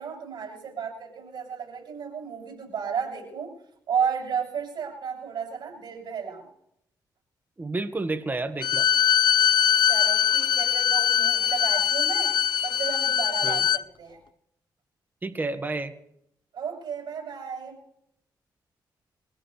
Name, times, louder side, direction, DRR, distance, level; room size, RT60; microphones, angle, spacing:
voice 1, 0.0-3.5 3.9-6.5 9.9-12.4 12.6-14.2 16.5-17.8, right 7 dB, 65° right, -1 dB, 7.3 m, -33 dB
voice 2, 7.6-8.8 13.4-13.6 15.2-15.9, right 3 dB, 25° right, 8 dB, 1.7 m, -30 dB
Bowed string instrument, 8.6-13.8, left 9 dB, 65° left, 0.5 m, -22 dB
24.0 x 16.5 x 3.4 m, 0.75 s
cardioid pair, 85°, 8 cm